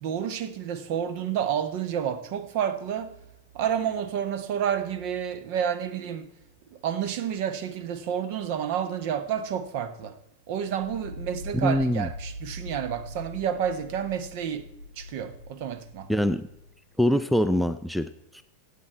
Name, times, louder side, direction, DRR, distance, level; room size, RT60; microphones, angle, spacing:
voice 1, 0.0-3.2 3.5-6.3 6.7-10.2 10.5-14.7 15.0-16.1, right 8 dB, 45° right, 1.0 m, -30 dB
sound 1, 10.7-16.7, left 1 dB, 90° left, 0.5 m, -41 dB
voice 2, 11.5-12.1 16.1-16.5 17.0-18.4, equal, ahead, 0.4 m, -24 dB
16.0 x 8.5 x 4.6 m
figure-of-eight pair, 90°, 0 cm